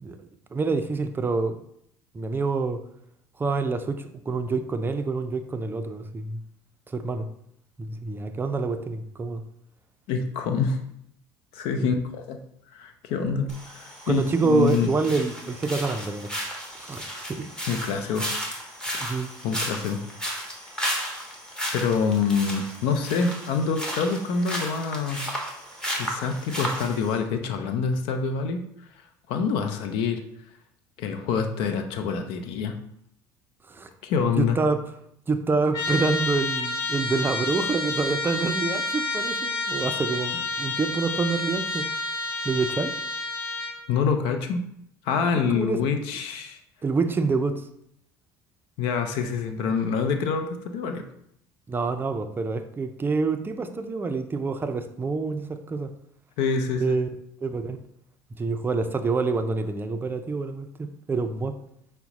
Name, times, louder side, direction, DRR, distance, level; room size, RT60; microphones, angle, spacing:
voice 1, 0.0-1.6 2.1-2.8 3.4-6.4 6.9-7.3 7.8-9.4 11.8-11.9 14.1-16.3 16.8-17.0 17.3-17.5 19.0-19.3 33.7-33.9 34.4-34.8 35.3-41.9 42.4-42.9 45.5-45.8 46.8-47.6 51.7-55.9 56.8-57.1 57.4-57.8 58.4-61.6, right 4 dB, 20° right, 8 dB, 0.4 m, -27 dB
voice 2, 10.1-10.8 11.5-12.4 12.7-13.5 13.7-14.9 17.7-18.3 18.9-19.2 19.4-20.0 21.7-25.2 26.0-28.6 29.3-30.2 31.0-32.7 34.0-34.6 43.9-44.6 45.0-46.6 48.8-51.0 56.4-57.0, left 5 dB, 65° left, 7 dB, 0.6 m, -26 dB
sound 1, 13.5-27.2, equal, 10° left, 1.2 m, -34 dB
Trumpet, 35.7-43.8, left 3 dB, 40° left, 1.5 m, -29 dB
5.7 x 2.1 x 4.0 m, 0.73 s
hypercardioid pair, 80°, 10 cm